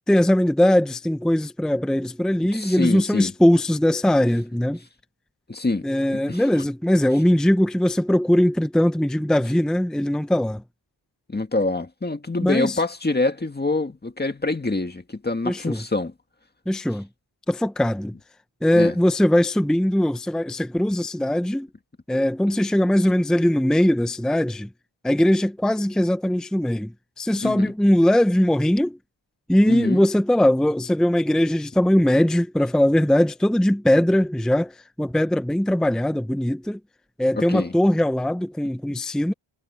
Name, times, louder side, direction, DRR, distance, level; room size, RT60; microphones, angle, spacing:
voice 1, 0.1-4.8 5.8-10.6 12.4-12.8 15.4-15.8 16.7-17.1 17.5-18.1 18.6-21.7 22.1-24.7 25.0-29.0 29.5-36.8 37.2-39.3, left 1 dB, ahead, 0.7 m, -20 dB
voice 2, 2.5-3.3 5.5-5.9 6.3-6.4 11.3-16.1 18.7-19.0 27.4-27.7 29.7-30.0 37.5-37.7, left 2 dB, 20° left, 1.9 m, -25 dB
wide cardioid pair, 140°, 46 cm